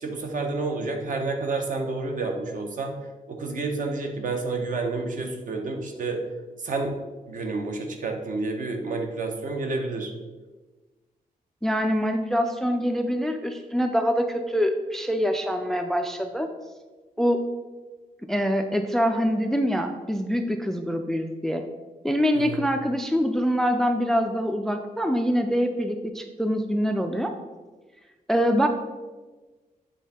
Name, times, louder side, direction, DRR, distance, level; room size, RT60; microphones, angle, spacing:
voice 1, 0.0-3.0 3.3-6.2 6.6-7.0 7.3-10.1 22.3-22.7, right 3 dB, 60° right, 3 dB, 0.9 m, -29 dB
voice 2, 11.6-16.5 17.2-17.4 18.3-21.6 22.0-27.3 28.3-28.7, equal, 5° left, 6 dB, 0.3 m, -24 dB
8.2 x 3.6 x 4.2 m, 1.3 s
wide cardioid pair, 165°, 15 cm